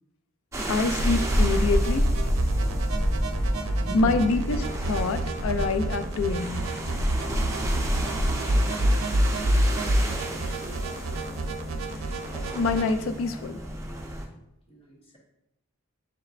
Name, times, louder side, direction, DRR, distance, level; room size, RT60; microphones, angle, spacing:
sound 1, 0.5-14.2, right 1 dB, 15° right, 0.6 m, -31 dB
voice 1, 0.7-2.1 3.9-6.6 12.5-13.6, left 3 dB, 75° left, 10 dB, 0.4 m, -26 dB
sound 2, 1.0-12.9, right 1 dB, 80° right, 0.5 m, -27 dB
voice 2, 3.7-4.3 9.8-10.8 14.7-15.2, right 1 dB, 25° left, -3 dB, 1.1 m, -43 dB
6.8 x 3.1 x 2.4 m, 0.87 s
head